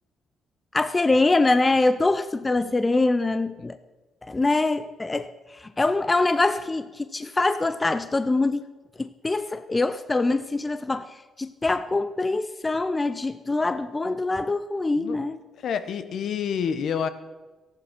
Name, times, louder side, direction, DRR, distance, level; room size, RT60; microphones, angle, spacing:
voice 1, 0.7-3.8 4.3-8.7 9.0-15.4, left 2 dB, 20° left, 13 dB, 0.5 m, -24 dB
voice 2, 15.6-17.1, left 7 dB, 65° left, 11 dB, 1.0 m, -28 dB
15.0 x 11.0 x 5.8 m, 1.2 s
cardioid pair, 90°, 0 cm